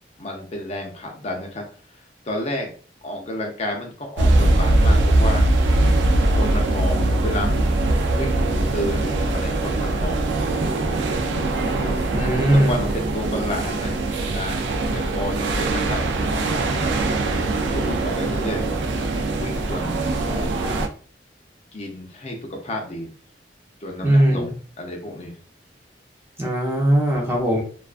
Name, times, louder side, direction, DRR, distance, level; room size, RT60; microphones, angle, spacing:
voice 1, 0.2-1.6 1.9-2.7 3.0-5.5 6.3-10.3 11.6-11.9 12.2-14.7 14.9-17.0 17.6-18.7 19.3-20.6 21.7-23.1 23.8-25.4, left 1 dB, 40° left, 1 dB, 0.5 m, -31 dB
sound 1, 4.2-20.9, right 2 dB, 90° right, 0.4 m, -21 dB
voice 2, 12.1-12.8 24.0-24.5 26.4-27.6, right 1 dB, 15° right, -2 dB, 0.7 m, -19 dB
2.3 x 2.3 x 2.4 m, 0.42 s
head